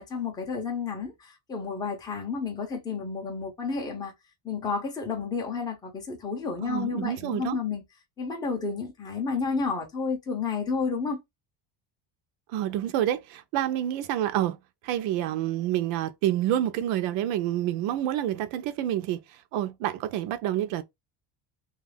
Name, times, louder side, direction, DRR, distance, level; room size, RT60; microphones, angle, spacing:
voice 1, 0.0-4.1 4.4-7.8 8.2-11.2, left 5 dB, 10° left, 0.4 m, -31 dB
voice 2, 6.6-7.6 12.5-14.6 14.8-19.2 19.5-20.8, right 12 dB, 75° right, 0.6 m, -28 dB
2.4 x 2.3 x 3.2 m
cardioid pair, 165°, 47 cm